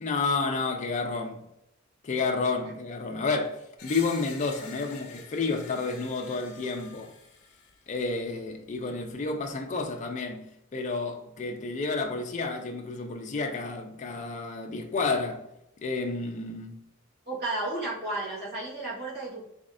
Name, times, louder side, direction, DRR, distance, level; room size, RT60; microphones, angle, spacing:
voice 1, 0.0-1.4 2.0-7.1 7.9-10.5 10.7-15.5 15.8-16.8, left 3 dB, 35° left, 0.4 m, -30 dB
Screech, 3.8-7.8, left 5 dB, 80° left, 0.6 m, -47 dB
voice 2, 17.3-19.4, right 2 dB, 55° right, 1.5 m, -33 dB
3.5 x 3.1 x 2.5 m
head